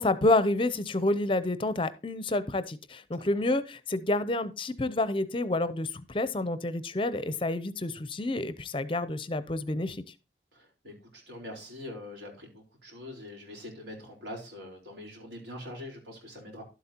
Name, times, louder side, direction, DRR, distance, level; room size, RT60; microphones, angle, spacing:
voice 1, 0.0-10.0, left 2 dB, 30° left, 14 dB, 0.5 m, -29 dB
voice 2, 3.1-3.5 10.5-16.6, left 1 dB, 80° right, 0 dB, 4.2 m, -44 dB
12.0 x 7.9 x 2.8 m, 0.31 s
head